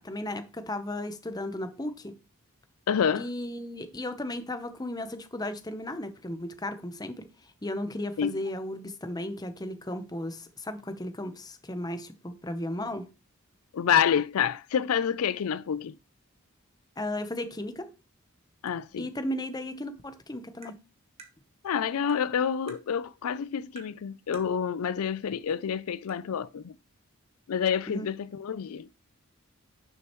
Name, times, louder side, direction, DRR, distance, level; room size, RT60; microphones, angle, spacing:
voice 1, 0.0-2.1 3.2-7.3 7.6-13.1 17.0-17.9 19.0-20.8 27.9-28.1, left 1 dB, 15° left, 0.8 m, -35 dB
voice 2, 2.9-3.3 8.2-8.3 13.7-16.0 18.6-19.1 21.6-26.8 27.5-28.9, left 8 dB, 75° left, 0.4 m, -28 dB
Tap, 20.6-20.8 21.2-21.3 22.1-22.2 22.7-22.8 23.8-23.9 24.3-24.5 25.5-25.6 26.1-26.2, right 5 dB, 25° right, 1.2 m, -49 dB
11.0 x 6.4 x 3.0 m
head